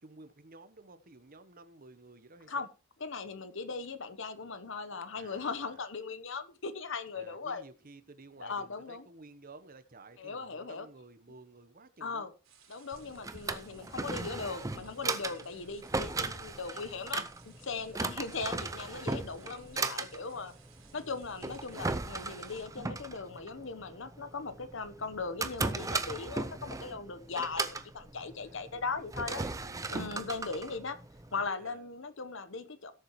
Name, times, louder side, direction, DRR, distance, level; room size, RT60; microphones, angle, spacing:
voice 1, 0.0-2.7 5.1-5.8 7.1-12.3 15.4-15.9 28.4-30.3 31.6-31.9, right 3 dB, 45° right, 1.0 m, -54 dB
voice 2, 3.0-7.6 8.4-9.1 10.2-10.9 12.0-12.3 12.7-20.5 20.9-29.4 29.9-31.0 31.3-32.9, left 4 dB, 65° left, 1.0 m, -39 dB
sound 1, 12.4-22.7, right 7 dB, 85° right, 3.7 m, -62 dB
Drawer open or close, 12.9-31.5, right 3 dB, 15° right, 0.6 m, -37 dB
17.0 x 7.1 x 3.1 m
head